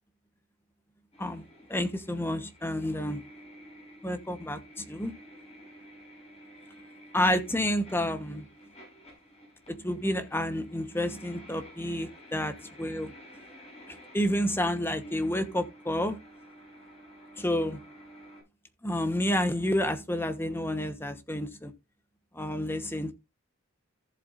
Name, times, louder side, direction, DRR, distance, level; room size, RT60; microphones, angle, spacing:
sound 1, 1.1-18.4, equal, 35° left, 6.3 m, -52 dB
voice 1, 1.7-3.2 4.0-5.1 7.1-8.5 9.7-13.1 14.1-16.2 17.4-17.8 18.8-21.7 22.3-23.1, left 1 dB, 10° left, 1.1 m, -29 dB
14.5 x 7.7 x 2.5 m
head